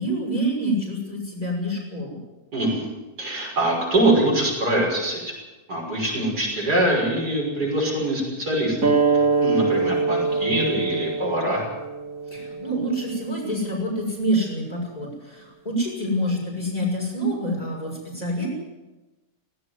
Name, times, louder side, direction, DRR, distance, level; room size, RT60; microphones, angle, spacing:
voice 1, 0.0-2.2 12.3-18.5, right 1 dB, 25° left, -1 dB, 6.5 m, -27 dB
voice 2, 2.5-2.9 3.2-5.3 5.7-8.8 9.1-11.7, right 1 dB, 75° right, -2 dB, 6.9 m, -23 dB
sound 1, 8.8-14.0, right 4 dB, 55° right, 2.8 m, -24 dB
17.5 x 17.0 x 9.6 m, 1.1 s
omnidirectional pair, 1.7 m